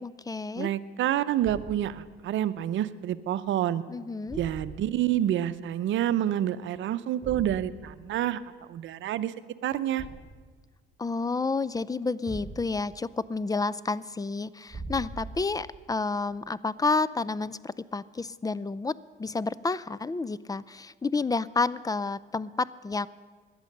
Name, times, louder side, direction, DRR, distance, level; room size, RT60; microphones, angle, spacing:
voice 1, 0.0-0.7 3.9-4.4 11.0-23.1, left 3 dB, 20° left, 19 dB, 0.4 m, -30 dB
voice 2, 0.6-3.8 4.4-8.4 8.7-9.3 9.6-10.0, right 11 dB, 75° right, 14 dB, 0.7 m, -28 dB
Thump thud, 1.4-1.9 4.3-5.0 7.2-7.7 10.0-10.4 12.3-12.9 14.7-15.7, right 3 dB, 15° right, 3.6 m, -41 dB
17.5 x 11.5 x 6.6 m, 1.5 s
cardioid pair, 90°, 20 cm